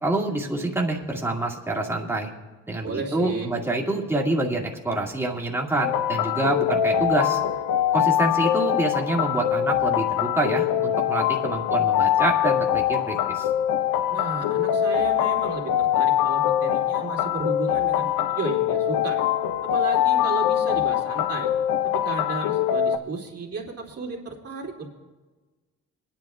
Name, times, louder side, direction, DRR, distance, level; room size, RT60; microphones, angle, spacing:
voice 1, 0.0-2.3 2.7-7.4 7.9-13.5, right 2 dB, 10° right, -1 dB, 2.0 m, -26 dB
voice 2, 2.8-3.5 14.1-19.2 19.6-21.5 22.0-24.9, right 4 dB, 50° right, -1 dB, 2.7 m, -33 dB
sound 1, 5.8-23.0, left 10 dB, 85° left, 0.5 m, -23 dB
26.5 x 10.5 x 2.4 m, 1.3 s
cardioid pair, 90°, 30 cm